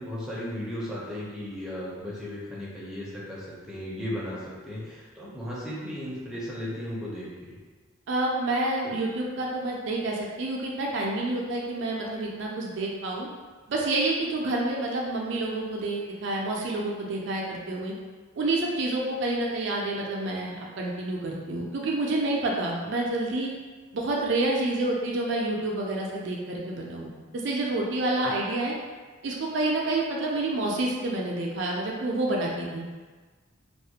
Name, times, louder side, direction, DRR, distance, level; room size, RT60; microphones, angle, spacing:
voice 1, 0.0-7.6, left 1 dB, 5° right, -7 dB, 0.5 m, -35 dB
voice 2, 8.1-13.3 13.7-17.9 18.3-23.5 23.9-28.7 29.2-32.9, right 2 dB, 60° right, -2 dB, 0.4 m, -28 dB
2.3 x 2.1 x 2.7 m, 1.4 s
head